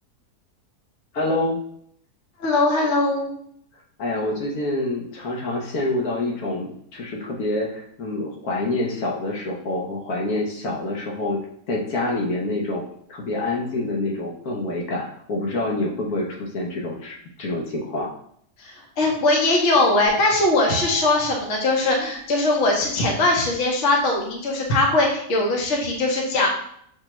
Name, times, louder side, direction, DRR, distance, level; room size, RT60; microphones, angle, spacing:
voice 1, 1.1-1.6 4.0-11.4 11.7-12.8 13.1-18.1, left 2 dB, 75° left, -2 dB, 1.3 m, -27 dB
voice 2, 2.4-3.3 18.6-26.5, left 2 dB, 55° left, 0 dB, 1.1 m, -21 dB
sound 1, 20.1-22.3, right 3 dB, 30° left, 0.9 m, -34 dB
6.8 x 2.3 x 3.0 m, 0.68 s
omnidirectional pair, 1.6 m